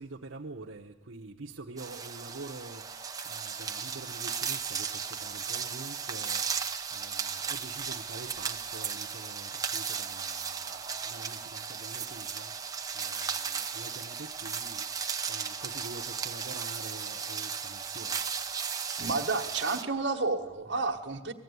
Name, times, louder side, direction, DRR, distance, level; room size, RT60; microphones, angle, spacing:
voice 1, 0.0-6.4 6.9-12.5 12.9-14.8 15.3-18.2, right 3 dB, 85° right, -1 dB, 0.9 m, -46 dB
sound 1, 1.8-19.8, right 6 dB, 20° right, 0.9 m, -35 dB
voice 2, 19.0-21.3, right 3 dB, 65° right, 3 dB, 1.6 m, -30 dB
20.0 x 14.5 x 9.5 m, 1.2 s
head